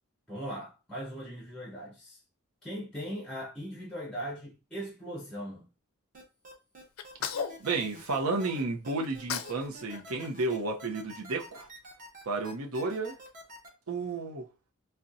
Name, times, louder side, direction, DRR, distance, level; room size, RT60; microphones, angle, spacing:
voice 1, 0.3-2.2 2.6-5.7, equal, 5° left, 0.6 m, -39 dB
sound 1, 6.1-13.7, left 1 dB, 35° right, 0.8 m, -48 dB
Sneeze, 7.0-8.6 9.0-9.6 9.9-11.4, left 7 dB, 75° left, 0.4 m, -38 dB
voice 2, 7.6-11.7 12.3-13.2 13.9-14.5, right 3 dB, 80° right, 0.7 m, -32 dB
4.0 x 2.2 x 2.6 m
head